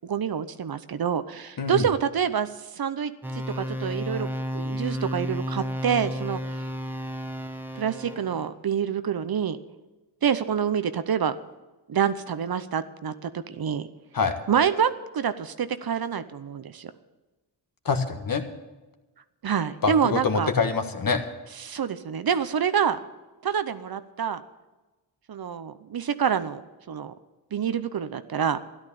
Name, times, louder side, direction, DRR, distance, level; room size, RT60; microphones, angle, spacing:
voice 1, 0.0-4.3 4.5-6.4 7.8-9.6 10.2-11.4 11.9-13.9 14.5-16.9 19.4-20.5 21.6-23.0 23.4-24.4 25.3-26.6 26.9-27.1 27.5-28.6, right 8 dB, 50° right, 12 dB, 0.8 m, -27 dB
sound 1, 3.2-8.5, equal, 5° right, 1.2 m, -32 dB
voice 2, 17.8-18.4 19.8-21.3, left 4 dB, 45° left, 6 dB, 1.5 m, -25 dB
13.5 x 11.5 x 6.9 m, 1.1 s
cardioid pair, 80°, 46 cm